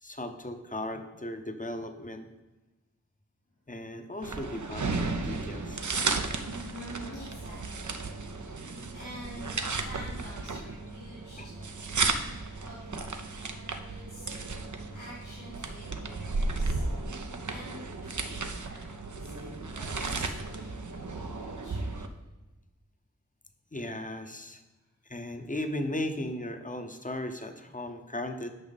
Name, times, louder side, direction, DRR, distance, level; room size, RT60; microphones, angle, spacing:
voice 1, 0.0-2.3 3.7-5.9 11.4-11.5 23.7-24.6 25.0-28.5, left 1 dB, 25° left, 7 dB, 0.8 m, -36 dB
sound 1, 4.2-22.1, right 3 dB, 75° right, 0.7 m, -34 dB
voice 2, 6.7-11.8 12.6-14.3 14.9-16.9 17.5-22.1, equal, 85° left, -8 dB, 2.0 m, -48 dB
8.8 x 6.0 x 4.1 m, 1.1 s
wide cardioid pair, 40°, 30 cm